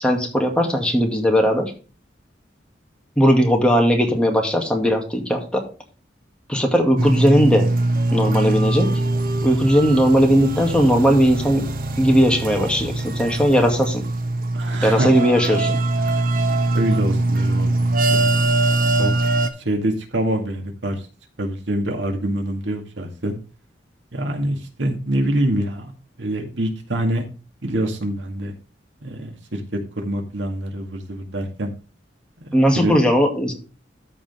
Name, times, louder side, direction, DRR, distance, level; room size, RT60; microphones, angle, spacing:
voice 1, 0.0-1.7 3.2-5.6 6.5-7.7 8.1-8.9 9.4-11.7 12.0-14.0 14.8-15.8 32.5-33.5, equal, 5° left, 1 dB, 2.2 m, -18 dB
sound 1, 7.0-19.5, right 2 dB, 50° right, 1.2 m, -22 dB
voice 2, 14.5-15.1 16.0-16.3 16.7-18.5 18.9-19.1 19.6-21.0 21.4-23.4 24.1-25.9 26.2-27.3 27.6-28.5 29.0-31.7 32.4-32.5 32.7-32.9, right 1 dB, 80° right, 3 dB, 2.1 m, -25 dB
13.5 x 5.2 x 3.6 m, 0.34 s
head